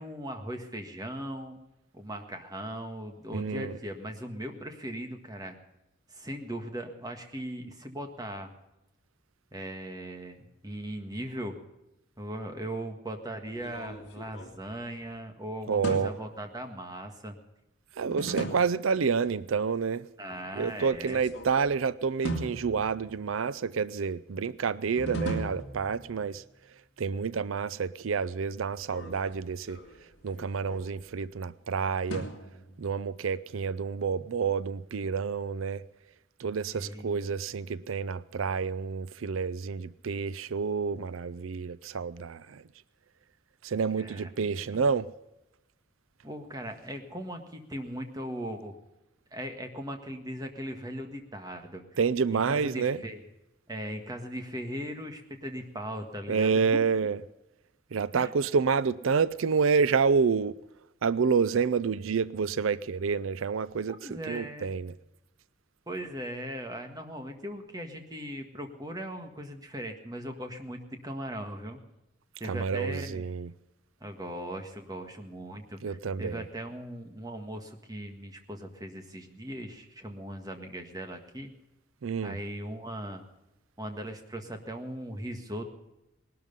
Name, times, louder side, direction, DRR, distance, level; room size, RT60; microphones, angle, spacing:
voice 1, 0.0-1.6 1.9-5.6 6.1-8.5 9.5-11.6 12.2-17.4 20.2-21.2 36.7-37.3 44.0-44.3 44.6-44.8 46.2-48.8 49.3-51.8 52.3-53.2 53.7-56.9 58.1-58.3 64.0-64.7 65.9-71.8 72.4-73.2 74.0-81.5 82.2-83.2 83.8-85.6, right 1 dB, 20° right, 1.6 m, -39 dB
voice 2, 3.3-3.7 15.7-16.2 18.0-20.0 20.6-26.4 27.0-29.8 30.2-32.3 32.8-35.8 36.4-42.6 43.6-45.1 52.0-53.1 56.3-57.2 57.9-60.6 61.0-65.0 72.4-73.5 75.8-76.5 82.0-82.4, right 5 dB, 85° right, 0.5 m, -29 dB
sound 1, 13.5-15.2 15.8-16.5 18.1-19.0 21.0-21.7 22.2-23.3 25.0-26.4 28.7-31.3 32.1-33.1, right 1 dB, 60° left, 2.4 m, -38 dB
19.0 x 12.5 x 5.4 m
head